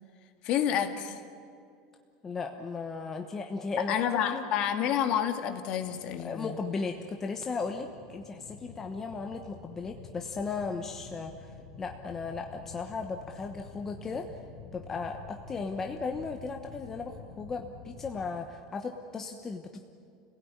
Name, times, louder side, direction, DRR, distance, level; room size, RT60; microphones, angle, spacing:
voice 1, 0.4-1.2 3.9-6.6, left 9 dB, 40° left, 7 dB, 2.1 m, -29 dB
voice 2, 2.2-3.9 4.3-4.4 6.2-11.3 11.8-14.3 14.7-19.8, left 4 dB, 15° left, 4 dB, 1.1 m, -36 dB
sound 1, 5.8-18.3, left 5 dB, 85° left, 3.6 m, -49 dB
29.5 x 17.0 x 9.7 m, 2.4 s
supercardioid pair, 165°, 2 cm